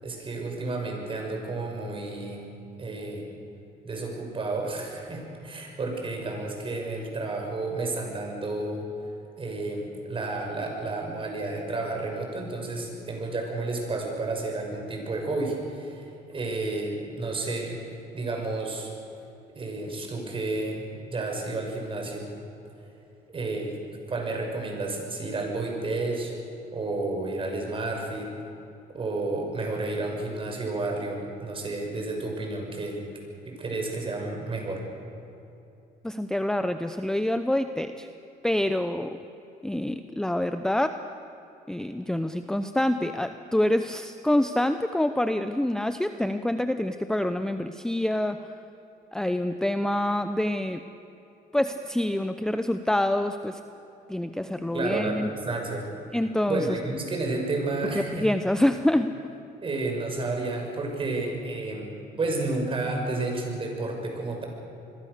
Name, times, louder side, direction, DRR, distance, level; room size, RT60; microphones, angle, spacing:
voice 1, 0.0-2.4 2.8-3.3 3.8-8.8 9.4-17.8 18.1-18.9 19.5-22.3 23.3-23.8 24.1-26.3 26.7-28.3 28.9-33.0 33.5-34.8 54.7-55.9 56.5-58.3 59.6-61.9 62.2-64.5, right 2 dB, 30° right, 2 dB, 6.1 m, -31 dB
voice 2, 36.0-38.1 38.4-39.2 39.6-41.0 41.7-48.4 49.1-50.8 51.5-53.6 54.1-55.3 56.1-56.8 57.9-59.1, left 1 dB, 5° left, 9 dB, 0.7 m, -26 dB
27.0 x 21.5 x 6.8 m, 2.8 s
cardioid pair, 110°, 17 cm